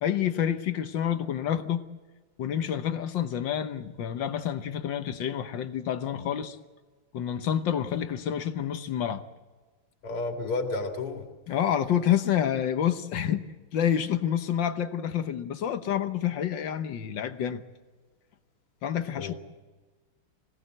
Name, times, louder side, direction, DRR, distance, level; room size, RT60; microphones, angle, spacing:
voice 1, 0.0-1.9 2.4-6.6 7.1-9.2 11.5-17.6 18.8-19.3, left 9 dB, 60° left, 1.6 m, -28 dB
voice 2, 10.0-11.3 19.2-19.3, left 3 dB, 80° left, 3.2 m, -31 dB
25.0 x 17.5 x 7.9 m
omnidirectional pair, 2.4 m